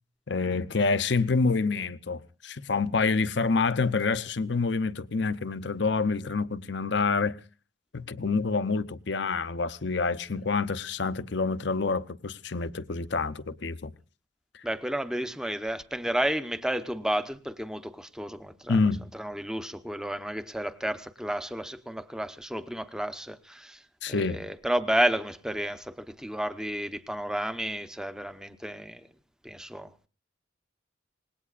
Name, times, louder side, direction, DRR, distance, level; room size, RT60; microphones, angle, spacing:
voice 1, 0.3-7.4 7.9-13.9 14.5-14.6 18.7-19.0 24.0-24.4, left 4 dB, 60° left, 0.7 m, -27 dB
voice 2, 14.6-18.8 19.1-29.0 29.4-30.1, right 1 dB, 5° right, 0.8 m, -31 dB
26.0 x 19.5 x 2.4 m
head